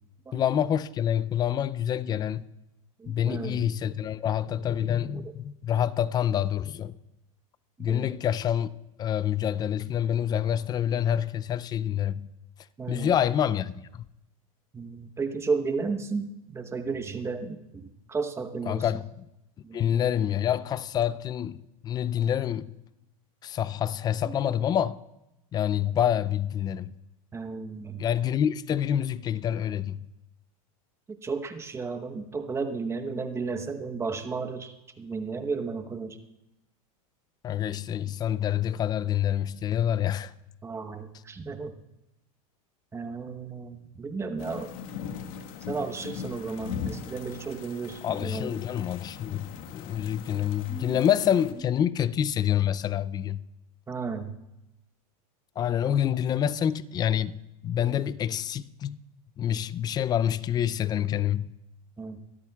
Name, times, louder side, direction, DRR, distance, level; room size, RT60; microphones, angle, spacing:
voice 1, 0.3-2.4 3.1-7.0 7.8-8.7 9.0-12.3 12.9-14.0 18.7-19.3 19.7-22.7 23.4-25.0 25.5-26.9 28.0-30.0 37.4-40.3 48.0-53.4 55.6-57.3 57.6-59.0 59.4-61.5, left 10 dB, 20° left, 0.4 m, -27 dB
voice 2, 3.0-3.7 4.5-4.6 7.8-8.1 12.8-13.1 14.7-18.8 19.6-20.0 24.2-24.3 27.3-28.0 31.2-36.2 40.6-41.7 42.9-44.7 45.7-48.6 50.7-51.0 53.9-54.3 62.0-62.2, right 4 dB, 15° right, 1.0 m, -33 dB
sound 1, 44.4-51.5, left 7 dB, 65° left, 1.5 m, -40 dB
23.5 x 13.5 x 2.3 m
supercardioid pair, 130°, 19 cm